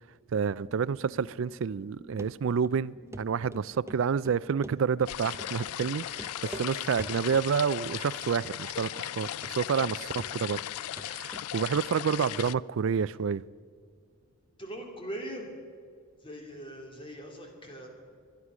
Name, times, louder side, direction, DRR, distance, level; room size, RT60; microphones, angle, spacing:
voice 1, 0.3-6.3 6.6-10.6 11.0-13.4, right 6 dB, 65° right, 0.3 m, -29 dB
sound 1, 0.5-5.5, equal, 50° left, 3.8 m, -55 dB
Run, 2.2-2.3 2.6-2.7 3.1-3.2 3.5-5.1 5.4-5.5 5.8-5.9 6.1-6.7 7.0-7.5 7.8-8.3 8.5-8.6 9.1-9.2 9.4-9.9 10.2-10.7 11.0-12.2 12.5-12.6 12.9-13.0, right 1 dB, 10° right, 0.5 m, -44 dB
sound 2, 5.0-12.5, left 13 dB, 85° left, 0.3 m, -37 dB
voice 2, 6.1-6.6 14.6-15.5 16.2-17.9, right 1 dB, 25° left, 2.6 m, -41 dB
23.5 x 9.7 x 6.2 m
head